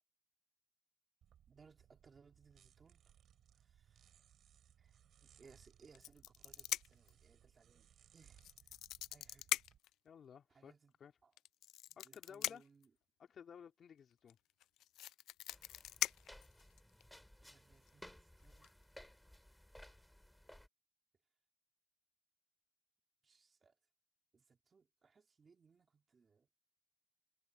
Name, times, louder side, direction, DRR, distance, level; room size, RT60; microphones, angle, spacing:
sound 1, 1.2-9.8, right 9 dB, 60° right, 6.3 m, -67 dB
voice 1, 1.5-3.1 3.5-4.2 4.8-8.8 9.1-9.5 10.5-10.9 11.2-11.3 11.9-12.9 17.4-18.7 23.2-23.7 24.3-26.5, right 5 dB, 30° right, 3.5 m, -67 dB
sound 2, 5.9-7.1 8.4-9.9 11.4-12.8 14.3-14.4 14.6-17.0 17.9-18.1 18.4-18.7, left 14 dB, 85° left, 0.3 m, -41 dB
voice 2, 10.0-10.7 11.0-11.1 12.0-12.6 13.2-14.4, left 7 dB, 45° left, 3.5 m, -56 dB
sound 3, 15.5-20.7, left 1 dB, 5° left, 6.4 m, -59 dB
cardioid pair, 140°, 0 cm